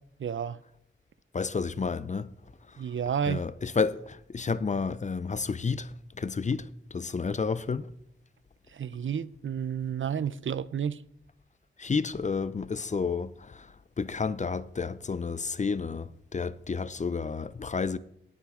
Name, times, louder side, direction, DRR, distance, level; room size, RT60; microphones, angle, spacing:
voice 1, 0.2-0.6 2.8-3.5 8.7-11.0, right 8 dB, 65° right, 0.5 m, -31 dB
voice 2, 1.3-2.3 3.3-5.9 6.2-6.7 6.9-7.9 11.8-13.7 14.0-18.0, left 5 dB, 35° left, 0.4 m, -30 dB
17.5 x 7.3 x 3.6 m
wide cardioid pair, 105°, 21 cm